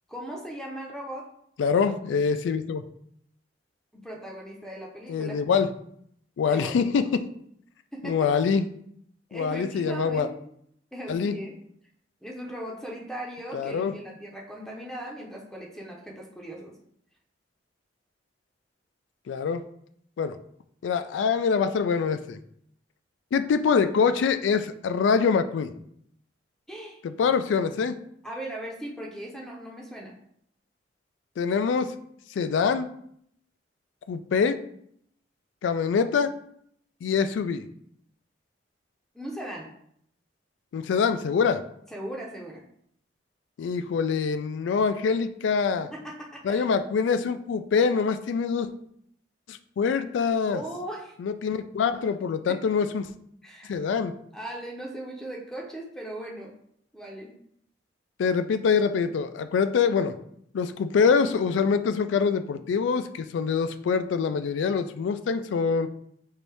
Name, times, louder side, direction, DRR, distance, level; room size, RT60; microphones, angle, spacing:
voice 1, 0.1-1.3 4.0-5.4 6.5-6.9 7.9-8.3 9.3-10.3 10.9-11.5 12.2-16.8 26.7-27.0 28.2-30.2 39.1-39.7 41.9-42.6 45.9-46.7 50.4-51.1 52.5-52.6 53.4-53.7 54.3-56.5 56.9-57.3, right 1 dB, 5° left, -2 dB, 0.6 m, -38 dB
voice 2, 1.6-2.8 5.1-5.7 6.4-7.3 8.0-8.7 9.3-10.3 11.1-11.4 13.5-13.9 19.3-19.6 20.2-20.4 20.8-22.4 23.3-25.8 27.0-28.0 31.4-31.9 32.4-32.9 34.1-34.6 35.6-36.3 37.0-37.7 40.7-41.6 43.6-45.9 46.4-48.7 49.5-50.6 51.2-53.1 53.7-54.1 58.2-60.1 60.5-65.9, left 5 dB, 85° left, 11 dB, 0.3 m, -24 dB
4.5 x 2.6 x 3.2 m, 0.69 s
head